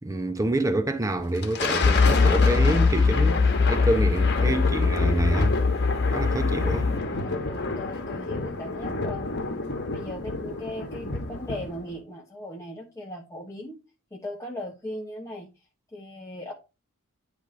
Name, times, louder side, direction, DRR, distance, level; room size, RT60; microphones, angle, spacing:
voice 1, 0.0-3.4 3.7-5.6 6.1-6.9, right 1 dB, 15° right, 0.8 m, -27 dB
Thunder, 1.2-11.9, left 3 dB, 50° left, 1.2 m, -30 dB
sound 1, 1.8-7.0, left 4 dB, 30° left, 0.4 m, -22 dB
voice 2, 7.2-9.4 9.8-13.8 14.1-15.5 15.9-16.5, left 1 dB, 15° left, 0.9 m, -38 dB
10.0 x 3.4 x 3.8 m
head